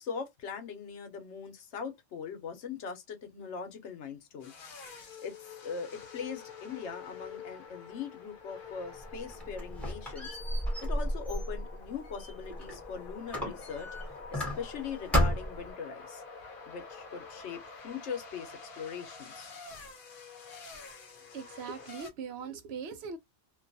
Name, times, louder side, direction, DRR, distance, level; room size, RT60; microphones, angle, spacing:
voice 1, 0.0-4.5 4.9-10.3 10.8-13.9 14.3-16.2 16.7-19.5, left 6 dB, 85° left, 1.0 m, -41 dB
sound 1, 4.4-22.1, left 5 dB, 55° left, 0.8 m, -48 dB
Squeak, 9.0-12.8 13.3-14.8 15.1-15.7, equal, ahead, 1.0 m, -32 dB
voice 2, 21.3-23.2, right 6 dB, 70° right, 0.8 m, -40 dB
2.5 x 2.3 x 2.6 m
omnidirectional pair, 1.2 m